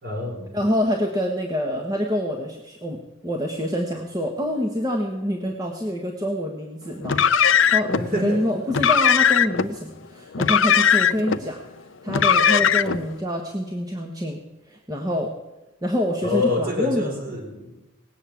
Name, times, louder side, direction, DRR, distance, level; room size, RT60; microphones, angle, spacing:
voice 1, 0.0-0.5 7.9-8.4 16.2-17.8, left 2 dB, 45° right, 1 dB, 4.1 m, -26 dB
voice 2, 0.5-11.6 12.0-15.3 15.8-17.1, equal, 20° right, 1 dB, 1.3 m, -26 dB
Car, 7.0-8.0 8.7-9.7 10.3-11.4 12.1-13.0, left 7 dB, 65° left, 0.6 m, -18 dB
18.5 x 8.4 x 8.3 m, 1.1 s
head